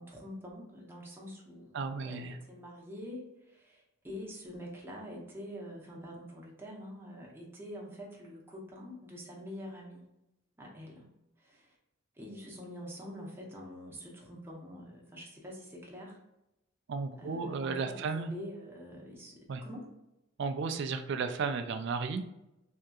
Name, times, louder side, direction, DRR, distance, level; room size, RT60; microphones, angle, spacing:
voice 1, 0.0-10.1 10.6-11.0 11.4-11.8 12.2-16.2 17.2-19.9, equal, 10° right, -3 dB, 0.7 m, -46 dB
voice 2, 1.7-2.4 16.9-18.3 19.5-19.6 20.4-22.3, right 4 dB, 60° right, 8 dB, 0.3 m, -34 dB
3.5 x 2.7 x 2.3 m, 0.90 s
head